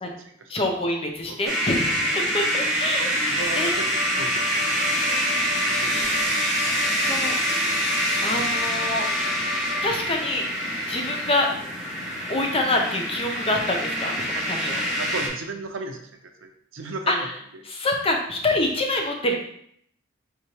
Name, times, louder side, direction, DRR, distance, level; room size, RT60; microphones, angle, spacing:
voice 1, 0.5-3.7 7.0-7.4 8.2-9.2 9.8-10.5 10.9-11.5 12.3-14.8 17.1-17.3 17.7-19.4, left 1 dB, 30° left, 2 dB, 0.6 m, -26 dB
sound 1, 1.4-15.3, equal, ahead, 1.2 m, -25 dB
voice 2, 3.3-3.9 4.2-4.7 5.8-6.3 6.6-7.4 15.0-17.3 17.5-17.6, right 3 dB, 70° right, 4 dB, 0.6 m, -36 dB
Wind instrument woodwind instrument, 3.4-10.1, left 4 dB, 75° left, 0.6 m, -34 dB
4.6 x 3.6 x 2.9 m, 0.69 s
head